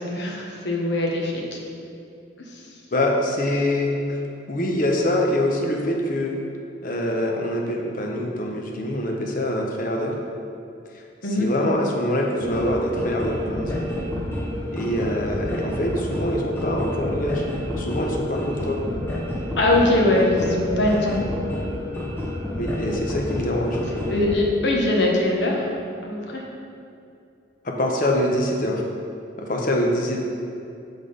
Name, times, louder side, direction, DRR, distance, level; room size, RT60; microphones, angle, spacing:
voice 1, 0.0-1.6 2.5-2.6 11.2-11.5 19.6-21.2 24.1-25.7 26.0-26.4, left 1 dB, 65° left, -1 dB, 0.9 m, -22 dB
voice 2, 2.9-4.2 4.5-6.4 6.8-10.2 10.9-11.0 11.4-13.9 14.7-17.4 17.8-18.8 22.5-23.8 27.6-28.8 29.4-30.2, left 1 dB, 45° left, 1 dB, 0.7 m, -24 dB
sound 1, 12.4-24.4, left 1 dB, 10° left, 0.7 m, -29 dB
5.9 x 3.6 x 5.1 m, 2.6 s
head